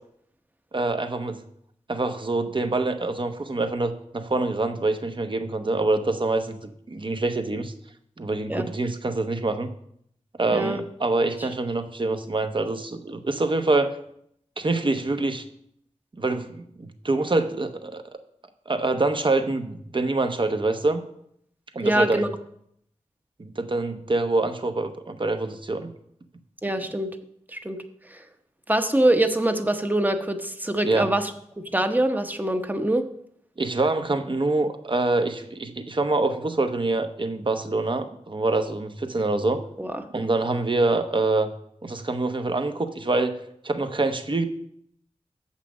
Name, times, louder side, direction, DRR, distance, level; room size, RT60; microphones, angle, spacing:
voice 1, 0.7-1.4 1.9-6.6 6.9-7.7 8.2-9.7 10.4-13.9 14.6-15.4 16.2-18.0 18.7-21.0 21.7-22.2 23.4-25.9 30.8-31.1 33.6-39.6 40.1-41.5 41.8-43.3 43.6-44.4, right 2 dB, 45° right, 7 dB, 0.9 m, -25 dB
voice 2, 10.5-10.8 21.8-22.3 26.6-27.1 27.5-27.8 28.1-28.2 28.7-31.3 31.7-33.0 39.8-40.0, right 1 dB, 15° right, 7 dB, 0.9 m, -24 dB
7.3 x 5.8 x 6.1 m, 0.71 s
wide cardioid pair, 60°, 12 cm